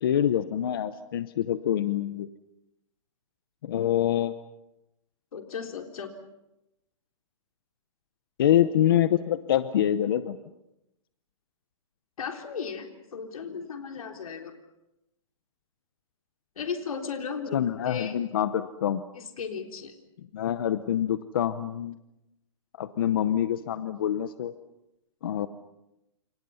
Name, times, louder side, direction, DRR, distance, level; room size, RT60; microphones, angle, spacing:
voice 1, 0.0-2.3 3.6-4.3 8.4-10.4 17.5-19.0 20.3-22.0 22.8-24.5 25.2-25.5, left 10 dB, 40° left, 12 dB, 0.9 m, -25 dB
voice 2, 5.3-6.1 12.2-14.5 16.6-18.2 19.1-19.9, left 6 dB, 75° left, 4 dB, 3.7 m, -36 dB
29.0 x 27.5 x 5.7 m, 0.89 s
hypercardioid pair, 175°, 18 cm